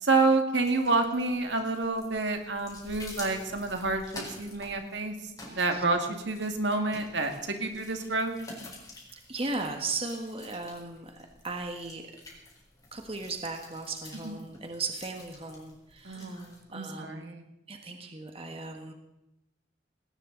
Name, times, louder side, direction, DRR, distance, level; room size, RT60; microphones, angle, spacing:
voice 1, 0.0-8.4 14.2-14.3 16.0-17.4, right 3 dB, 70° right, 5 dB, 2.1 m, -29 dB
sound 1, 0.5-16.6, left 2 dB, 20° left, 4.5 m, -49 dB
voice 2, 5.4-5.8 9.3-12.0 12.9-16.4 16.7-17.2 17.7-18.9, right 3 dB, 30° right, 4 dB, 1.6 m, -37 dB
19.0 x 18.0 x 4.0 m, 0.88 s
head